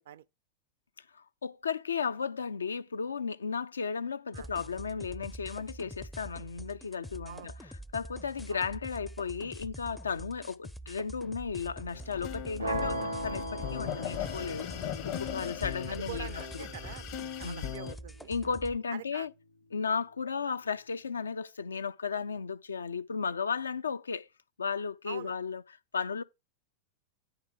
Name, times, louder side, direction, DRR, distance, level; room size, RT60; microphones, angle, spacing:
voice 1, 1.1-14.7 15.0-16.7 17.4-17.8 18.3-19.3 19.7-24.3 24.6-25.6 25.9-26.2, left 5 dB, 75° left, 0.3 m, -35 dB
sound 1, 4.3-18.8, right 1 dB, 5° left, 0.4 m, -46 dB
sound 2, 11.9-17.9, left 10 dB, 45° left, 0.7 m, -39 dB
sound 3, 12.6-18.6, right 1 dB, 85° right, 0.8 m, -39 dB
voice 2, 15.9-18.3 18.9-19.3 25.1-25.3, right 11 dB, 60° right, 0.4 m, -45 dB
9.6 x 3.2 x 4.8 m
figure-of-eight pair, 90°, 0 cm